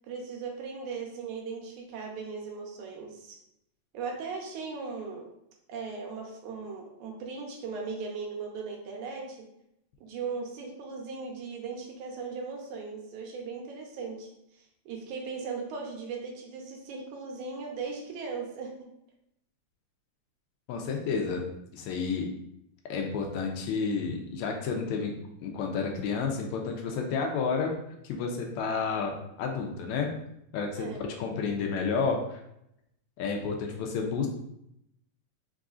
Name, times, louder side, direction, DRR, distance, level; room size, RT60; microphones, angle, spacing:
voice 1, 0.0-3.4 3.9-5.3 5.7-9.5 10.0-14.3 14.6-18.7 30.8-31.0, right 4 dB, 85° right, 0 dB, 2.2 m, -38 dB
voice 2, 20.7-21.5 21.7-22.3 22.9-25.1 25.4-27.8 28.0-29.1 29.4-30.1 30.5-32.4 33.2-34.3, left 5 dB, 80° left, 2 dB, 1.9 m, -30 dB
4.7 x 3.7 x 2.4 m, 0.78 s
omnidirectional pair, 3.3 m